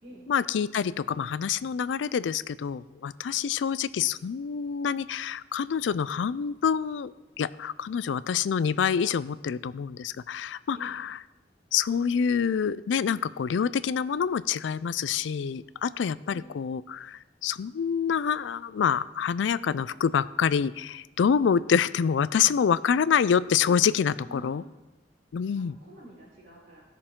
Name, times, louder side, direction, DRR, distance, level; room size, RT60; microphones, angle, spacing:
voice 1, 0.3-11.2 11.7-24.6 25.3-25.8, left 7 dB, 90° left, 17 dB, 0.4 m, -27 dB
voice 2, 24.2-24.7 25.5-26.9, right 1 dB, 55° right, -12 dB, 3.6 m, -48 dB
17.0 x 6.7 x 3.7 m, 1.1 s
head